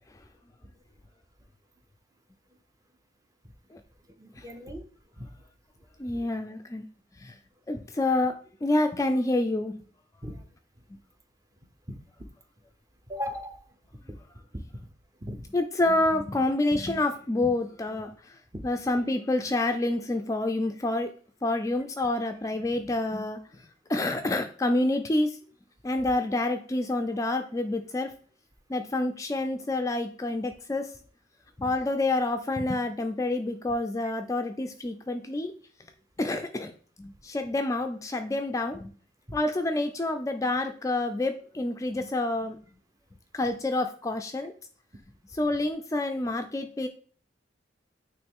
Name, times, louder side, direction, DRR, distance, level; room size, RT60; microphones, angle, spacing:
voice 1, 4.2-4.9 5.2-5.3 7.7-7.8 10.2-10.4 11.9-12.0 13.1-13.6 14.1-14.2 14.5-14.9 15.2-15.5 18.5-18.7 34.0-34.1, left 1 dB, 20° right, 6 dB, 0.6 m, -38 dB
voice 2, 6.0-6.8 7.2-7.3 7.7-8.4 8.6-9.8 15.5-18.4 18.6-21.1 21.4-23.4 23.9-25.4 25.8-28.1 28.7-30.9 31.6-35.5 36.2-36.7 37.0-38.9 39.3-42.6 43.3-44.5 45.3-46.9, left 2 dB, 15° left, 6 dB, 0.3 m, -28 dB
8.8 x 3.1 x 3.6 m, 0.43 s
head